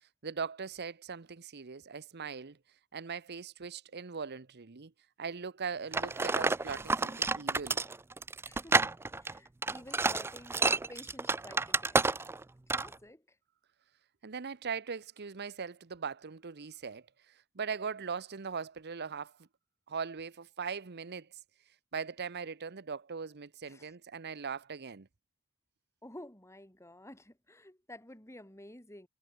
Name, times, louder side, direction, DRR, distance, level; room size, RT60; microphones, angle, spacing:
voice 1, 0.2-2.6 2.9-4.9 5.2-7.8 14.2-19.5 19.9-21.3 21.9-25.1, right 5 dB, 50° right, 0.8 m, -40 dB
sound 1, 5.9-12.4 12.7-12.9, right 3 dB, 10° right, 0.3 m, -30 dB
voice 2, 8.4-12.1 12.7-13.4 23.7-23.9 26.0-29.1, left 1 dB, 15° left, 4.0 m, -52 dB
head